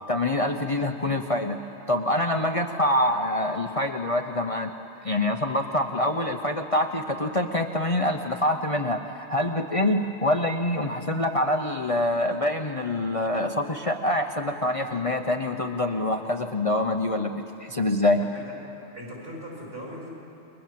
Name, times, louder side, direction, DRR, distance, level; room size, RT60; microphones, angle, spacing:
voice 1, 0.1-1.6 1.9-4.7 5.0-18.2, left 1 dB, 30° left, 3 dB, 0.9 m, -25 dB
voice 2, 18.9-20.1, equal, 55° right, -3 dB, 7.9 m, -39 dB
29.5 x 22.5 x 7.7 m, 2.7 s
omnidirectional pair, 1.2 m